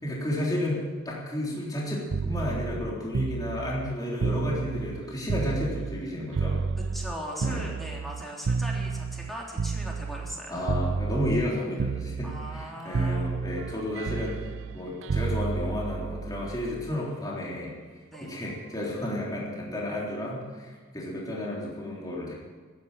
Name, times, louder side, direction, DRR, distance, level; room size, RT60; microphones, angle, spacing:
voice 1, 0.0-6.6 7.4-7.7 10.5-14.4 14.7-17.8 18.2-22.3, left 1 dB, 20° left, -4 dB, 3.6 m, -32 dB
sound 1, 2.1-6.1 6.3-10.4 10.7-11.5 11.8-12.7 12.9-16.9 18.1-18.4, right 4 dB, 70° right, 0.5 m, -31 dB
voice 2, 6.9-10.8 12.2-13.3 18.1-18.4, equal, ahead, -3 dB, 3.5 m, -39 dB
14.5 x 10.5 x 9.0 m, 1.5 s
head